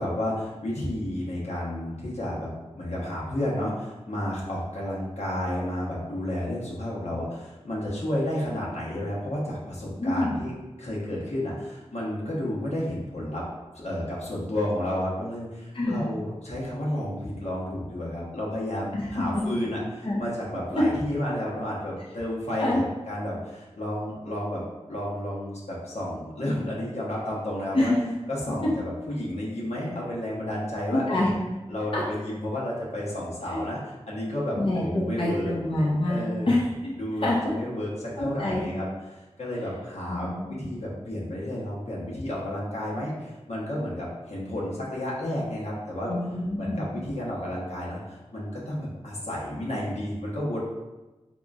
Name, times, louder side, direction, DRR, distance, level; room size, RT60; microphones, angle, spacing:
voice 1, 0.0-2.5 2.7-13.4 13.7-24.6 24.9-27.9 28.3-31.3 31.7-35.5 36.1-36.5 37.0-46.1 46.6-50.6, left 1 dB, 80° left, -6 dB, 0.9 m, -31 dB
voice 2, 10.0-10.3 15.7-16.0 18.9-19.5 20.0-20.2 22.6-22.8 27.7-28.1 31.1-31.3 31.9-32.0 33.5-33.6 34.6-36.6 37.2-37.4 38.2-38.6 40.1-40.5 46.1-46.9, left 1 dB, 50° left, -6 dB, 0.6 m, -26 dB
3.8 x 2.9 x 2.4 m, 1.1 s
wide cardioid pair, 70°, 11 cm